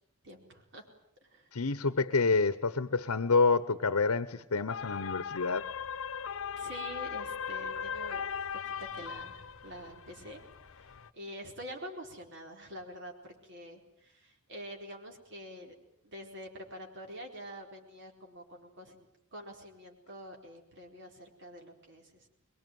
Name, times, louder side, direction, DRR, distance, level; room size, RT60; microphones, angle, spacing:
voice 1, 0.2-0.9 1.2-1.5 6.6-10.4 10.8-15.7 16.0-22.3, equal, 55° right, 2 dB, 4.6 m, -47 dB
voice 2, 1.5-5.6, left 4 dB, 90° left, 14 dB, 1.0 m, -28 dB
sound 1, 4.7-11.1, left 7 dB, 65° left, 1.0 m, -39 dB
24.0 x 22.5 x 9.4 m, 0.74 s
head